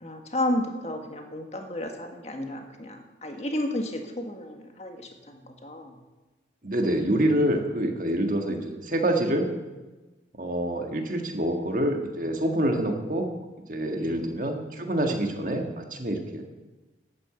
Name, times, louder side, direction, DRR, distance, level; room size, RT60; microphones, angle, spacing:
voice 1, 0.0-6.0 14.0-14.2, left 1 dB, 35° left, 3 dB, 1.6 m, -32 dB
voice 2, 6.6-9.5 10.4-13.3 13.7-16.4, right 1 dB, 45° right, 3 dB, 1.7 m, -26 dB
10.5 x 8.8 x 7.8 m, 1.2 s
head